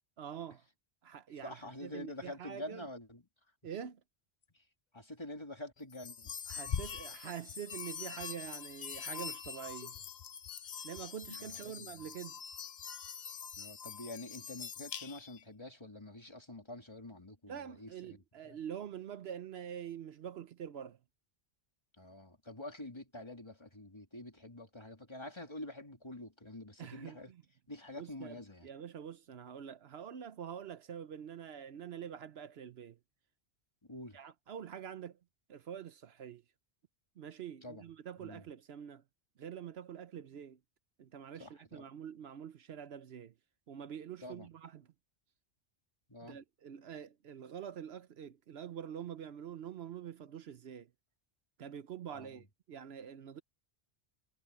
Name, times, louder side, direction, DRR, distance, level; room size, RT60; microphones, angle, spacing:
voice 1, 0.2-0.6 1.0-2.8 3.6-4.0 6.5-10.0 10.8-12.4 17.5-21.0 26.8-27.4 28.0-33.0 34.1-35.2 35.5-36.4 37.2-39.0 39.4-40.6 41.0-43.3 43.7-44.9 46.3-50.9 51.6-53.4, right 9 dB, 70° right, 1.0 m, -46 dB
voice 2, 1.4-3.2 4.5-4.7 4.9-6.3 11.4-12.0 13.6-18.6 22.0-27.3 27.7-28.7 33.8-34.2 37.6-37.9 38.2-38.4 41.3-41.8 44.2-44.5 46.1-46.4 52.1-52.4, left 1 dB, 25° left, 2.6 m, -47 dB
sound 1, 5.9-15.4, left 7 dB, 45° left, 0.7 m, -43 dB
omnidirectional pair, 1.1 m